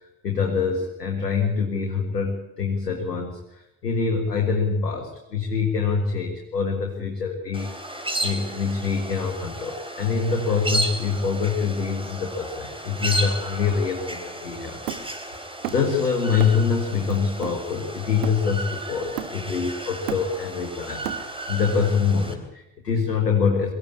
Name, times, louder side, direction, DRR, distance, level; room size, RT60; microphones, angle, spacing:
voice 1, 0.2-7.8 8.2-14.8 15.7-23.7, left 5 dB, 85° left, 2 dB, 1.8 m, -25 dB
sound 1, 7.5-22.3, right 1 dB, 10° right, 4.0 m, -33 dB
Hammer, 14.9-16.0 16.4-16.7 17.1-18.7 19.2-19.6 19.9-21.6, right 10 dB, 75° right, 1.6 m, -34 dB
22.5 x 15.5 x 8.4 m, 0.89 s
figure-of-eight pair, 40°, 47 cm